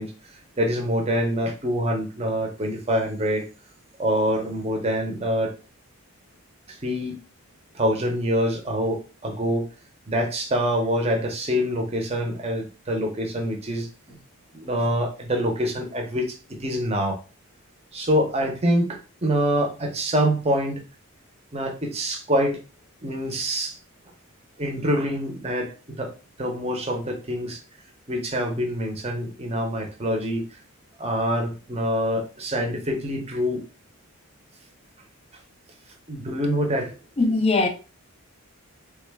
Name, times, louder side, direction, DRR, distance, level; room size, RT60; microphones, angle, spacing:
voice 1, 0.0-3.4 4.0-5.5 6.7-7.2 7.7-9.7 10.1-14.2 14.5-17.2 17.9-20.8 21.5-22.6 23.0-23.8 24.6-27.6 28.1-30.6 31.0-33.6 36.1-36.9, equal, 25° right, 0.6 m, -25 dB
voice 2, 37.2-37.7, left 3 dB, 25° left, 0.3 m, -20 dB
3.5 x 2.2 x 3.3 m
head